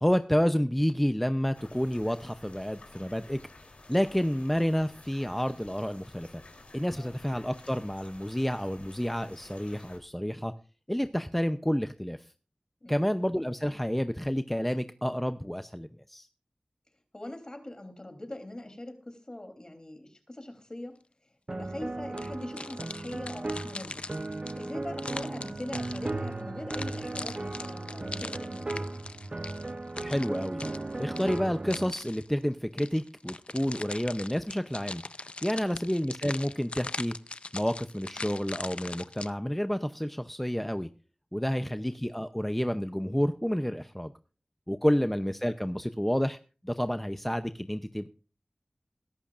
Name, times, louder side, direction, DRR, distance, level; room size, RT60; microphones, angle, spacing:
voice 1, 0.0-3.4 3.9-6.4 6.7-10.5 10.9-12.2 12.9-16.3 30.0-30.6 31.0-35.0 35.4-37.1 37.5-40.9 41.3-44.1 44.7-46.4 46.6-48.1, equal, 5° left, 9 dB, 0.7 m, -29 dB
sound 1, 1.5-10.0, left 2 dB, 75° left, 3.4 m, -52 dB
voice 2, 6.9-7.2 12.8-13.2 17.1-21.0 21.5-24.1 24.5-28.9 35.6-35.9 41.5-41.9 44.9-45.1, left 1 dB, 35° left, 6 dB, 3.4 m, -43 dB
sound 2, 21.5-31.9, right 2 dB, 45° right, 0.8 m, -36 dB
sound 3, 22.2-26.3 26.7-32.3 32.8-39.3, left 3 dB, 60° left, 0.5 m, -41 dB
22.0 x 11.5 x 2.5 m, 0.35 s
wide cardioid pair, 55°, 2 cm